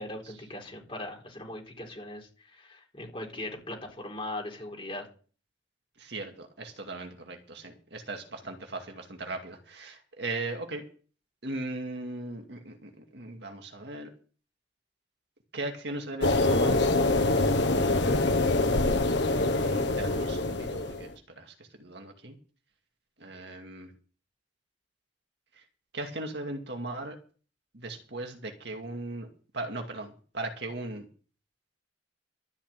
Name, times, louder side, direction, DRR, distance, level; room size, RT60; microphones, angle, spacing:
voice 1, 0.0-5.1, left 1 dB, 30° left, 1 dB, 4.2 m, -39 dB
voice 2, 6.0-10.8 11.4-14.1 15.5-16.9 19.6-21.1 21.4-22.4 23.2-23.9 25.5-25.6 25.9-27.2 27.7-29.3 29.5-31.1, right 2 dB, 60° right, 3 dB, 2.3 m, -38 dB
sound 1, 16.2-21.1, left 2 dB, 65° left, 1.3 m, -25 dB
13.5 x 5.8 x 9.1 m, 0.39 s
head